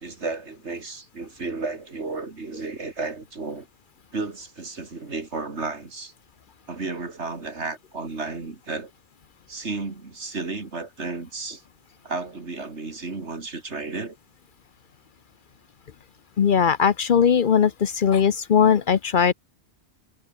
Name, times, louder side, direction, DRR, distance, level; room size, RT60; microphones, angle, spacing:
voice 1, 0.0-3.7 4.1-6.1 6.7-8.9 9.5-11.6 12.0-14.2, right 3 dB, 80° right, 3.0 m, -33 dB
voice 2, 16.4-19.3, left 7 dB, 55° left, 0.8 m, -19 dB
omnidirectional pair, 1.1 m